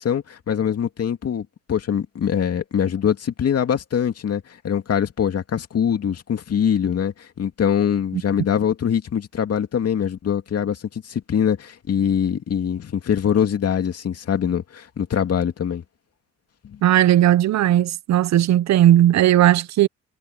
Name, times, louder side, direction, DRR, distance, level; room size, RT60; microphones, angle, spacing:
voice 1, 0.0-15.8 16.6-16.8, left 8 dB, 55° left, 2.5 m, -23 dB
voice 2, 16.8-19.9, right 12 dB, 65° right, 0.7 m, -16 dB
cardioid pair, 90°, 30 cm